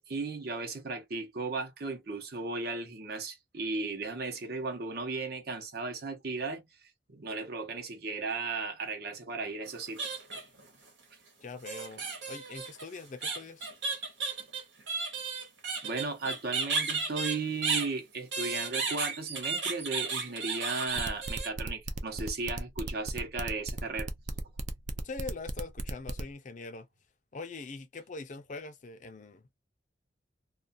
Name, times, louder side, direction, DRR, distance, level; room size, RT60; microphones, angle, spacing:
voice 1, 0.0-6.6 7.1-10.1 15.8-24.1, right 3 dB, 60° right, 0.8 m, -35 dB
sound 1, 9.7-10.6 11.7-17.9 18.3-21.5, right 4 dB, 85° right, 1.1 m, -34 dB
voice 2, 11.4-13.7 25.0-26.9 27.3-29.5, left 3 dB, 45° left, 0.5 m, -43 dB
sound 2, 21.0-26.2, right 3 dB, 40° right, 0.4 m, -36 dB
2.3 x 2.3 x 2.5 m
head